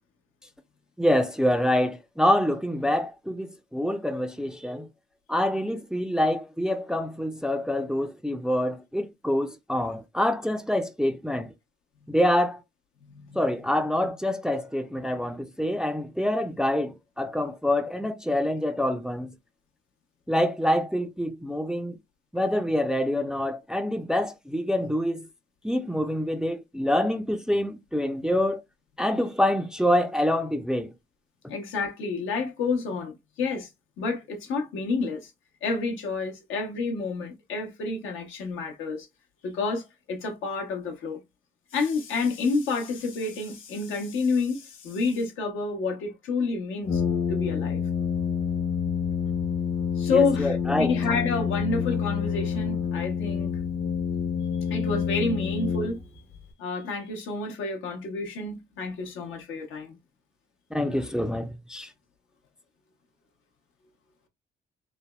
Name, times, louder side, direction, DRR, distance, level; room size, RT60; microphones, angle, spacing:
voice 1, 1.0-4.9 5.3-11.5 12.1-12.6 13.3-19.3 20.3-22.0 22.3-25.3 25.6-28.6 29.0-30.9 50.1-51.0 60.7-61.9, left 1 dB, 5° right, 0.3 m, -26 dB
voice 2, 13.0-13.4 31.5-33.7 34.0-35.3 35.6-39.1 39.4-41.2 41.7-47.0 47.3-47.8 50.0-53.6 54.7-56.0 56.6-60.0, left 4 dB, 85° left, 0.8 m, -29 dB
Brass instrument, 46.9-56.3, left 7 dB, 55° left, 0.7 m, -28 dB
3.3 x 2.0 x 2.2 m
cardioid pair, 90°, 20 cm